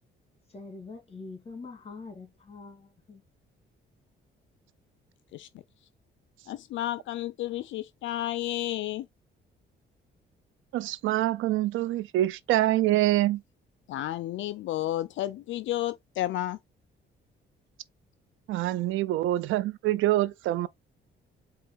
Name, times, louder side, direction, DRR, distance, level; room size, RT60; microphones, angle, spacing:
voice 1, 0.5-3.2, left 4 dB, 30° left, 2.3 m, -44 dB
voice 2, 6.5-9.1 13.9-16.6, left 14 dB, 70° left, 0.4 m, -32 dB
voice 3, 10.7-13.4 18.5-20.7, right 15 dB, 85° right, 0.4 m, -25 dB
4.6 x 3.0 x 3.4 m
cardioid pair, 90°, 20 cm